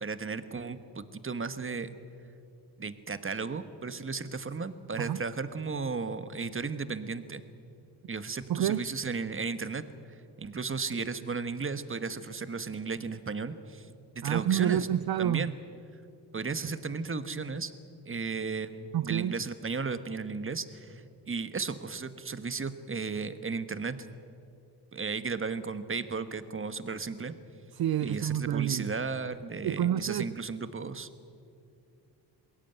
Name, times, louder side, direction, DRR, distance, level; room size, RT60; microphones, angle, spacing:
voice 1, 0.0-1.9 2.8-7.4 8.1-9.9 10.4-13.9 14.1-14.9 15.2-15.5 16.3-17.7 18.1-24.0 24.9-27.3 28.0-31.1, right 4 dB, 30° right, 12 dB, 1.3 m, -35 dB
voice 2, 8.5-8.9 14.2-15.5 18.9-19.3 27.7-28.9 29.6-30.3, right 10 dB, 60° right, 15 dB, 0.6 m, -28 dB
21.5 x 17.0 x 9.1 m, 2.5 s
cardioid pair, 70°, 42 cm